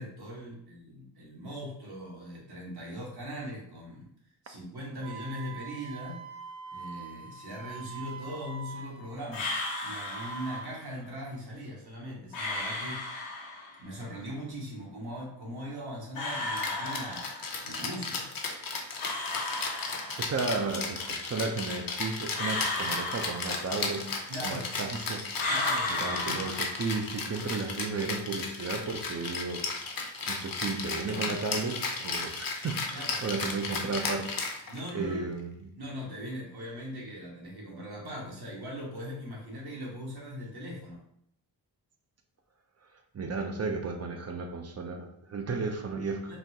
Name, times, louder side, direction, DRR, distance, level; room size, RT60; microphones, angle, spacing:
voice 1, 0.0-4.1 4.4-6.2 6.7-9.5 9.8-13.4 13.8-17.3 17.6-18.3 24.3-24.6 25.5-26.5 31.1-31.4 32.9-33.2 34.7-35.3 35.8-41.0 46.3-46.4, equal, 55° right, -3 dB, 1.4 m, -40 dB
Wind instrument woodwind instrument, 5.0-10.7, right 6 dB, 75° right, 0.8 m, -44 dB
sound 1, 9.3-10.8 12.3-13.8 16.1-17.7 19.0-20.5 22.3-24.1 25.4-27.2, left 2 dB, 90° left, 1.0 m, -34 dB
Rattle (instrument), 16.6-35.0, left 4 dB, 45° left, 0.8 m, -35 dB
voice 2, 20.2-25.2 26.0-29.6 30.3-34.3 34.9-35.7 43.1-46.4, right 4 dB, 35° right, 5 dB, 0.6 m, -34 dB
4.1 x 2.2 x 2.7 m, 0.71 s
cardioid pair, 50°, 46 cm